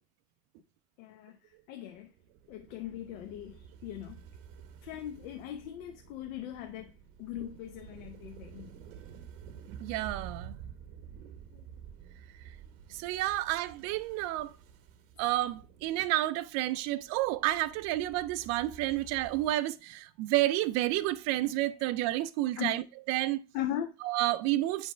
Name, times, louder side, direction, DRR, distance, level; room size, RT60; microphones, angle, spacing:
voice 1, 1.0-1.4 1.7-2.1 2.5-4.2 4.8-6.9 7.2-8.7 11.5-11.6 22.6-22.7 23.5-23.9, left 11 dB, 75° left, 0.9 m, -39 dB
sound 1, 1.9-19.5, right 8 dB, 60° right, 1.1 m, -50 dB
voice 2, 9.8-10.6 12.9-14.5 15.2-23.4 24.0-24.9, right 15 dB, 40° right, 0.4 m, -30 dB
9.4 x 3.4 x 3.1 m
supercardioid pair, 145°, 40 cm